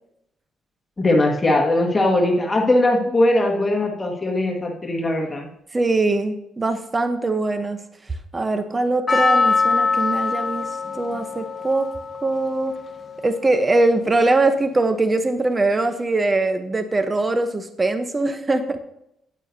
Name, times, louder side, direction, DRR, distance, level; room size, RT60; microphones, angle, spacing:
voice 1, 1.0-5.5, left 1 dB, 25° left, 0 dB, 1.6 m, -20 dB
voice 2, 5.7-7.8 8.3-10.7 10.9-11.9 12.2-12.8 13.2-18.8, right 2 dB, 25° right, 9 dB, 0.9 m, -21 dB
Percussion, 9.1-14.0, left 4 dB, 40° left, 1.3 m, -24 dB
9.6 x 9.0 x 2.7 m, 0.78 s
cardioid pair, 90°, 0 cm